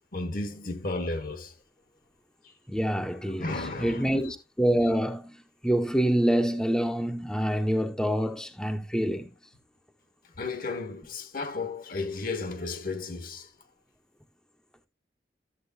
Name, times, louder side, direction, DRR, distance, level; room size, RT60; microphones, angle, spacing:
voice 1, 0.1-1.6 2.4-2.5 3.3-4.3 10.4-13.5, left 3 dB, 50° left, 1.1 m, -34 dB
voice 2, 2.7-9.3, equal, 5° left, 0.7 m, -26 dB
13.0 x 7.4 x 2.6 m
head